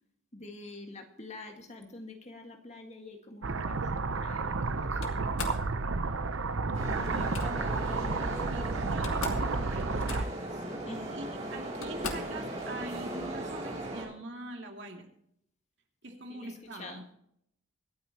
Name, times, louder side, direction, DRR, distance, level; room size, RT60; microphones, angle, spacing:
voice 1, 0.3-5.8 10.9-11.2 16.3-17.0, left 2 dB, 30° left, 4 dB, 1.8 m, -47 dB
sound 1, 3.4-10.2, right 3 dB, 70° right, 0.7 m, -31 dB
Slam, 5.0-5.7 7.0-7.5 8.6-8.7 8.9-9.5 9.8-10.5 11.2-11.3 11.8-12.4, left 4 dB, 80° left, 2.0 m, -40 dB
voice 2, 6.5-8.0 8.5-9.8 10.1-10.6 11.2-15.1 16.0-17.1, right 2 dB, 55° right, 2 dB, 2.5 m, -44 dB
sound 2, 6.7-14.0, right 1 dB, 35° right, 4.7 m, -38 dB
25.0 x 9.3 x 2.9 m, 0.73 s
head